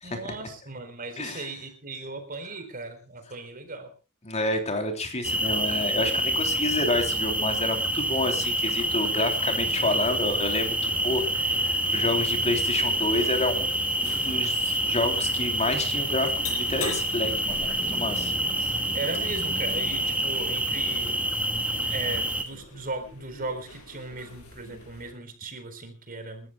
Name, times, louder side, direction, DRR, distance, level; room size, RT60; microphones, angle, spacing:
voice 1, 0.0-3.9 9.8-10.0 12.1-12.2 18.9-21.2 21.9-26.5, right 2 dB, 40° right, 8 dB, 4.4 m, -37 dB
voice 2, 1.2-1.5 4.2-13.7 14.0-18.3, left 2 dB, 30° left, 5 dB, 3.3 m, -29 dB
sound 1, 5.2-22.4, right 1 dB, 5° right, 2.2 m, -27 dB
sound 2, 8.8-25.1, left 4 dB, 80° left, 7.2 m, -44 dB
28.5 x 14.0 x 2.3 m, 0.31 s
head